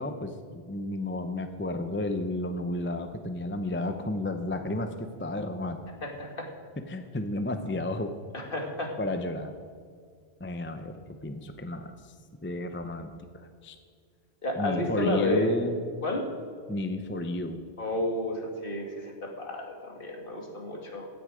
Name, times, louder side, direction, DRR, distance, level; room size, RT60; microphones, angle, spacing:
voice 1, 0.0-5.8 6.9-8.1 9.0-9.5 10.4-12.1 12.4-13.8 14.6-15.8 16.7-17.6, left 2 dB, 15° left, 7 dB, 0.6 m, -32 dB
voice 2, 6.0-6.5 8.3-8.9 14.4-15.5 16.0-16.2 17.8-21.1, left 1 dB, 50° left, 1 dB, 2.2 m, -31 dB
16.0 x 9.9 x 5.0 m, 2.1 s
omnidirectional pair, 1.1 m